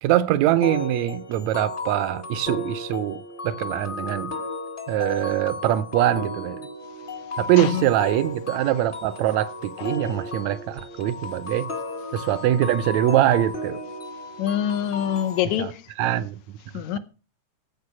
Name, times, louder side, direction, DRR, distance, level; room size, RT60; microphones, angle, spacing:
voice 1, 0.0-4.3 4.9-6.7 7.4-11.7 12.1-13.8 15.6-15.7 16.0-16.4, right 13 dB, 75° right, 1.8 m, -23 dB
sound 1, 0.6-15.4, left 2 dB, 30° left, 1.0 m, -34 dB
voice 2, 14.4-15.8 16.7-17.0, left 10 dB, 75° left, 2.2 m, -25 dB
15.0 x 5.1 x 6.0 m
omnidirectional pair, 3.4 m